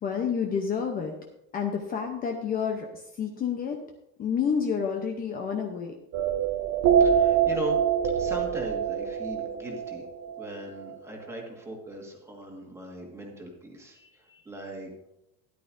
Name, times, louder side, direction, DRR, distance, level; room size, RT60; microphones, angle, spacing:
voice 1, 0.0-1.1 1.5-3.8 4.2-5.9, left 7 dB, 30° left, 2 dB, 0.8 m, -29 dB
sound 1, 6.1-11.0, right 8 dB, 50° right, 0.8 m, -25 dB
voice 2, 7.0-7.8 8.1-10.0 10.4-14.9, right 1 dB, 10° right, 0 dB, 1.7 m, -39 dB
13.0 x 11.0 x 2.6 m, 0.85 s
cardioid pair, 170°, 32 cm